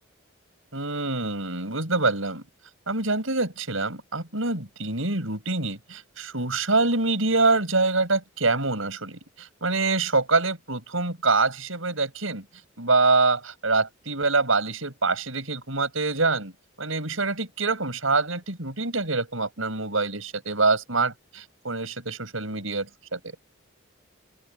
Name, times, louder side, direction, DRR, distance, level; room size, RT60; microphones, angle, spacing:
voice 1, 0.7-2.4 2.9-12.4 12.8-16.5 16.8-23.2, right 3 dB, 70° right, 6.1 m, -25 dB
open air
head